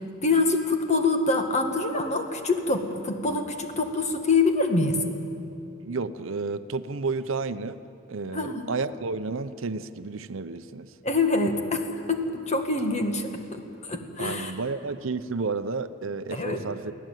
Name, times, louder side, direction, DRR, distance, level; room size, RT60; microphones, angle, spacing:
voice 1, 0.2-5.0 8.3-8.7 11.0-14.5 16.3-16.6, left 3 dB, 35° left, 5 dB, 1.8 m, -25 dB
voice 2, 5.8-7.8 8.1-10.9 14.2-17.0, right 4 dB, 65° right, 12 dB, 0.7 m, -31 dB
24.0 x 16.5 x 9.2 m, 2.7 s
head